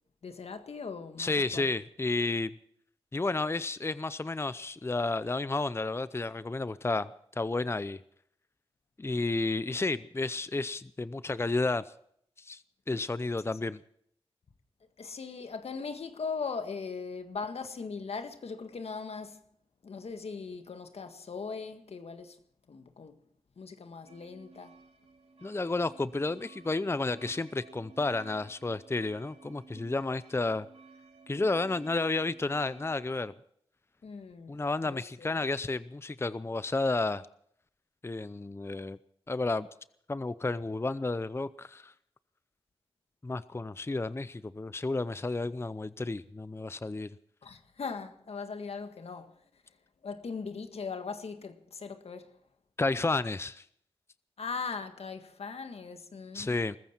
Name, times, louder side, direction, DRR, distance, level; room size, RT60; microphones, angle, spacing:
voice 1, 0.2-1.7 15.0-19.4 19.8-22.4 22.7-23.1 23.6-24.7 34.0-34.6 34.8-35.4 47.4-49.3 50.0-52.3 54.4-56.6, left 5 dB, 75° left, 1.7 m, -39 dB
voice 2, 1.2-2.5 3.1-7.1 7.4-8.0 9.0-11.9 12.4-12.6 12.9-13.8 25.4-30.7 31.3-33.3 34.5-37.2 38.0-39.0 39.3-39.7 40.1-41.9 43.2-47.1 52.8-53.6 56.3-56.8, left 3 dB, 25° left, 0.6 m, -31 dB
sound 1, 24.0-33.1, right 4 dB, 75° right, 2.6 m, -55 dB
21.5 x 14.5 x 4.5 m
cardioid pair, 50°, 11 cm